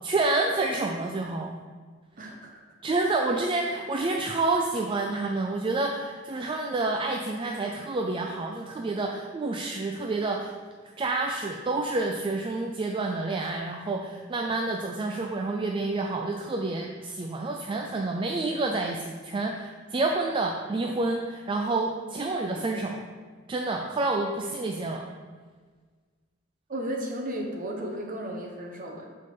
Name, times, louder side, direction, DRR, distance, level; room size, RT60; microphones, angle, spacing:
voice 1, 0.0-1.6 2.2-2.3 2.8-10.5 11.0-23.0 23.5-25.1, right 2 dB, 25° right, 1 dB, 0.3 m, -28 dB
voice 2, 2.2-2.5 26.7-29.1, right 1 dB, 45° right, 1 dB, 0.9 m, -34 dB
5.2 x 3.7 x 5.8 m, 1.5 s
head